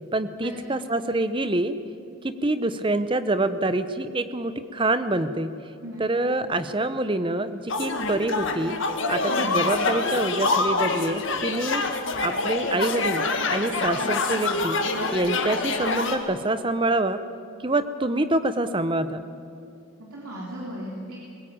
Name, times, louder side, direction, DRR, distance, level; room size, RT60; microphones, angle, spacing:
voice 1, 0.1-1.8 2.2-5.6 6.0-8.8 9.1-11.8 12.2-14.8 15.1-17.2 17.6-19.2, right 2 dB, 25° right, 11 dB, 0.8 m, -26 dB
sound 1, 7.7-16.2, left 3 dB, 55° left, 1.8 m, -26 dB
voice 2, 9.2-9.6 20.0-21.4, equal, 85° right, -3 dB, 3.2 m, -36 dB
21.5 x 16.5 x 8.8 m, 2.6 s
head